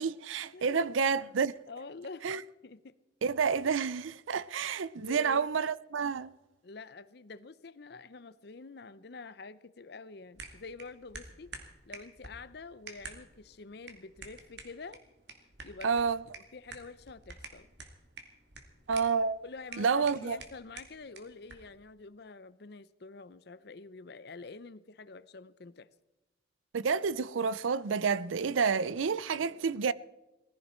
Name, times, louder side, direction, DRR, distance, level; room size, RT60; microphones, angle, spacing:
voice 1, 0.0-1.5 2.2-2.4 3.2-6.3 15.8-16.2 18.9-19.4 19.8-20.4 26.7-29.9, right 5 dB, 85° right, 0.5 m, -29 dB
voice 2, 0.5-1.2 1.7-2.3 2.6-3.0 3.5-3.6 5.0-5.5 6.6-11.5 11.9-15.0 15.6-16.0 16.5-17.7 19.4-25.9, left 4 dB, 55° left, 0.6 m, -47 dB
sound 1, 10.4-21.7, right 4 dB, 60° right, 2.2 m, -50 dB
19.0 x 15.0 x 4.4 m
head